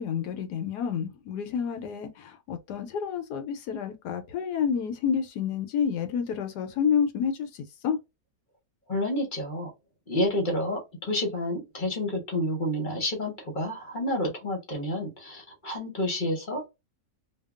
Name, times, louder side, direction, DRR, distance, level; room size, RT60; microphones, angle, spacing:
voice 1, 0.0-8.0, left 7 dB, 75° left, 1.2 m, -29 dB
voice 2, 8.9-9.7 10.1-16.7, left 1 dB, 35° left, 0.9 m, -29 dB
2.8 x 2.3 x 2.3 m
omnidirectional pair, 1.8 m